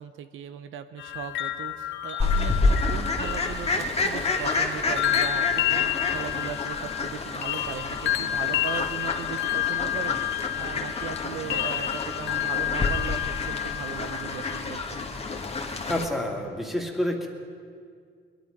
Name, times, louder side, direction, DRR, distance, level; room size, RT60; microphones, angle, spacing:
voice 1, 0.0-15.0, right 8 dB, 80° right, 11 dB, 0.7 m, -38 dB
sound 1, 1.0-14.6, left 12 dB, 65° left, 0.8 m, -30 dB
Fowl, 2.2-16.0, left 3 dB, 30° left, 1.6 m, -29 dB
voice 2, 15.9-17.3, left 1 dB, ahead, 1 dB, 2.5 m, -28 dB
22.0 x 11.5 x 5.3 m, 2.1 s
cardioid pair, 90°, 20 cm